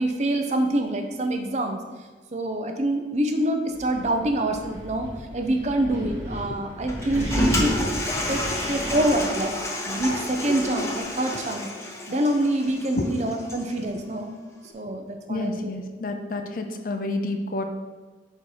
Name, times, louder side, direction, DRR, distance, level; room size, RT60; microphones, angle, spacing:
voice 1, 0.0-1.8 2.3-7.8 8.3-9.6 9.9-14.3 14.7-15.7, right 1 dB, 40° right, 5 dB, 0.6 m, -26 dB
Wind, 3.7-11.0, equal, 15° right, 1.3 m, -34 dB
Toilet flush, 6.9-13.8, left 1 dB, 15° left, 0.7 m, -30 dB
voice 2, 15.3-17.6, left 2 dB, 50° left, 6 dB, 0.5 m, -29 dB
5.3 x 4.3 x 4.8 m, 1.3 s
head